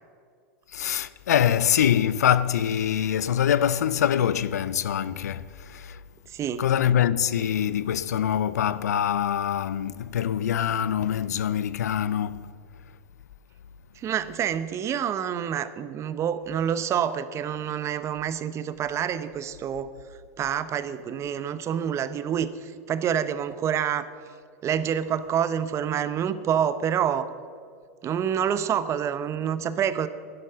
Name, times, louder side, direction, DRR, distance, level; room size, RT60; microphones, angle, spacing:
voice 1, 0.7-6.0 6.6-12.5, left 9 dB, 90° left, 0.5 m, -24 dB
voice 2, 6.3-6.6 14.0-19.9 20.4-24.1 24.6-27.3 28.0-30.1, right 9 dB, 35° right, 0.8 m, -27 dB
12.0 x 11.0 x 5.7 m
hypercardioid pair, 105°, 9 cm